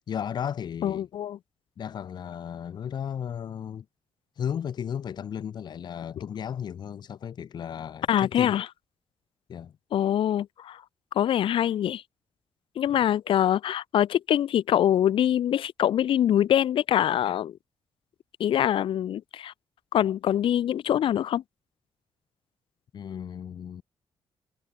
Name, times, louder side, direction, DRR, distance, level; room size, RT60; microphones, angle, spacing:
voice 1, 0.0-1.1 1.8-3.9 4.4-8.6 9.5-9.7 22.9-23.8, left 8 dB, 50° left, 2.3 m, -34 dB
voice 2, 0.8-1.4 8.1-8.7 9.9-10.8 11.1-12.0 12.7-17.6 18.4-19.5 19.9-21.4, left 10 dB, 65° left, 1.4 m, -24 dB
wide cardioid pair, 175°, 10 cm